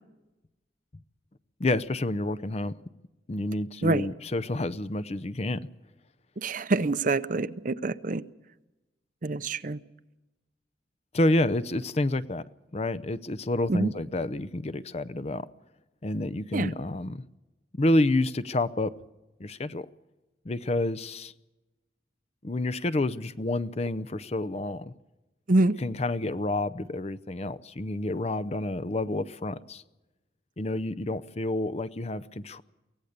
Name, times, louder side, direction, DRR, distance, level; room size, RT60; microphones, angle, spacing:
voice 1, 1.6-2.7 3.3-5.6 11.1-12.4 12.7-15.5 16.0-17.2 17.7-18.9 19.4-19.9 20.5-21.3 22.4-24.9 25.8-29.8 30.6-32.6, left 2 dB, 35° left, 0.6 m, -29 dB
voice 2, 6.4-8.2 9.2-9.8 13.7-13.9 16.5-16.7 25.5-25.7, right 2 dB, 45° right, 0.7 m, -26 dB
24.0 x 17.5 x 6.7 m
head